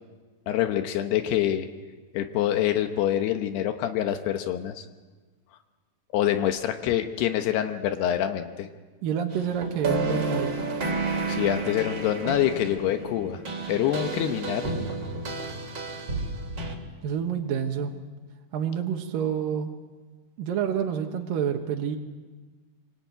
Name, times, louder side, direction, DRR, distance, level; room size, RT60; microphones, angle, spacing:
voice 1, 0.5-1.7 2.1-4.9 6.1-8.7 11.3-13.4 13.7-14.7, left 11 dB, 80° left, 7 dB, 3.1 m, -26 dB
voice 2, 9.0-10.6 17.0-17.9 18.5-19.7 20.4-22.0, right 8 dB, 65° right, 2 dB, 2.9 m, -28 dB
sound 1, 9.3-16.7, right 3 dB, 35° right, 3.4 m, -31 dB
24.5 x 24.5 x 9.2 m, 1.4 s
omnidirectional pair, 4.7 m